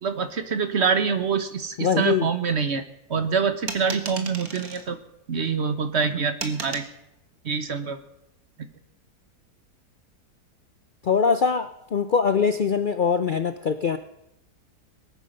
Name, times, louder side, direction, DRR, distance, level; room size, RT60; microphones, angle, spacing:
voice 1, 0.0-2.8 3.1-5.0 5.3-6.8 7.4-8.0, right 5 dB, 45° right, 10 dB, 1.3 m, -25 dB
voice 2, 1.8-2.3 11.0-14.0, left 6 dB, 85° left, 11 dB, 0.4 m, -22 dB
sound 1, 3.7-4.9 6.4-6.9, right 5 dB, 65° right, 2.1 m, -34 dB
20.5 x 9.3 x 6.6 m, 0.82 s
omnidirectional pair, 1.7 m